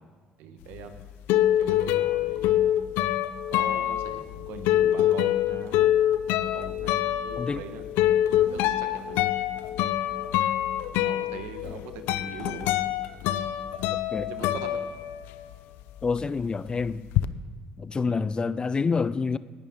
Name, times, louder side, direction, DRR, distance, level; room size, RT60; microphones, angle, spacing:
voice 1, 0.4-1.0 1.3-2.7 3.5-5.9 6.4-7.8 8.5-9.2 11.0-12.8 14.3-14.8 18.0-18.2, right 7 dB, 85° right, 1.2 m, -42 dB
sound 1, 0.7-15.5 15.8-17.3, left 12 dB, 85° left, 0.5 m, -25 dB
voice 2, 16.0-17.1 17.8-19.4, left 4 dB, 25° left, 0.4 m, -27 dB
18.0 x 10.5 x 3.7 m
cardioid pair, 95°, 3 cm